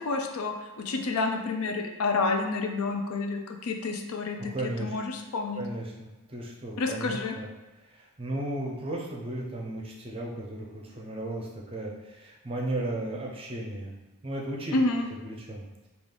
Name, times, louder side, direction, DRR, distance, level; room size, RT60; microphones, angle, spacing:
voice 1, 0.0-5.6 6.8-7.3 14.7-15.1, left 3 dB, 75° left, 4 dB, 0.4 m, -29 dB
voice 2, 4.5-4.9 5.6-7.5 7.9-13.9 14.2-14.8 15.2-15.7, right 1 dB, 25° right, -2 dB, 0.5 m, -35 dB
3.7 x 2.4 x 3.3 m, 1.1 s
head